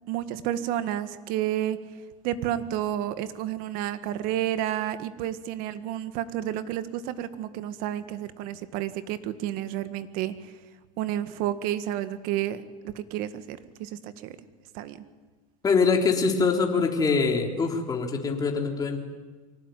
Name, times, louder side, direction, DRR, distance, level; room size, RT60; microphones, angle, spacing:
voice 1, 0.1-1.8 2.2-10.5 11.0-14.4 14.7-15.0, right 12 dB, 55° right, 12 dB, 1.8 m, -31 dB
voice 2, 15.6-19.0, left 4 dB, 20° left, 2 dB, 3.5 m, -24 dB
24.0 x 18.0 x 9.3 m, 1.4 s
supercardioid pair, 130°, 18 cm